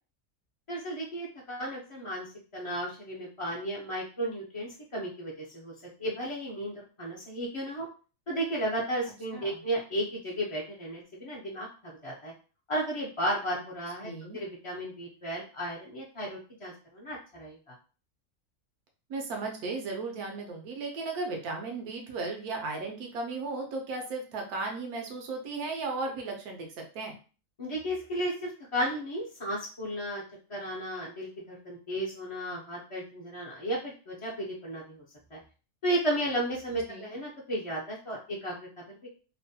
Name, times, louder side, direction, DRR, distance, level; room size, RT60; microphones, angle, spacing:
voice 1, 0.7-5.7 6.0-7.9 8.3-12.3 12.7-17.7 27.6-30.2 30.5-35.0 35.3-35.4 35.8-39.1, right 1 dB, 50° left, -4 dB, 0.3 m, -34 dB
voice 2, 14.0-14.4 19.1-26.7 26.9-27.2 36.9-37.1, right 3 dB, 85° right, 2 dB, 1.2 m, -35 dB
3.1 x 2.1 x 2.7 m, 0.36 s
omnidirectional pair, 1.6 m